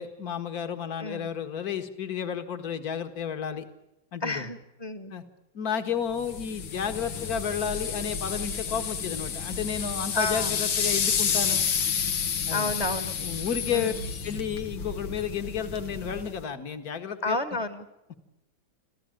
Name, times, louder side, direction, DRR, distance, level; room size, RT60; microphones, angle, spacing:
voice 1, 0.0-3.7 4.1-4.5 5.1-5.2 5.5-11.7 12.5-12.7 13.2-13.9 14.2-17.4, left 7 dB, 50° left, 8 dB, 2.2 m, -32 dB
voice 2, 4.2-5.1 10.1-10.5 12.5-13.1 13.7-13.9 17.2-17.9, left 2 dB, 20° left, 10 dB, 1.5 m, -30 dB
sound 1, 6.2-16.4, left 7 dB, 80° left, 2.4 m, -30 dB
27.0 x 15.0 x 9.0 m, 0.93 s
omnidirectional pair, 2.1 m